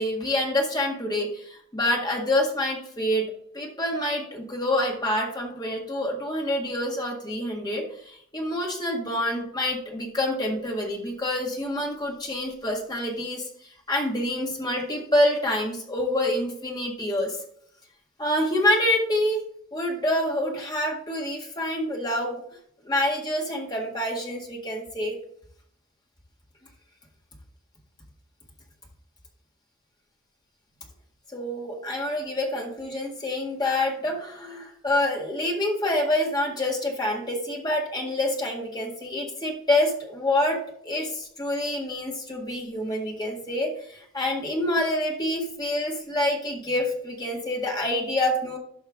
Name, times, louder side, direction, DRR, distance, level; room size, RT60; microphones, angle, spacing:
voice 1, 0.0-3.3 3.5-17.4 18.2-19.4 19.7-22.4 22.8-25.2 31.3-48.6, left 1 dB, 20° left, 0 dB, 1.7 m, -27 dB
12.0 x 5.6 x 3.6 m, 0.65 s
head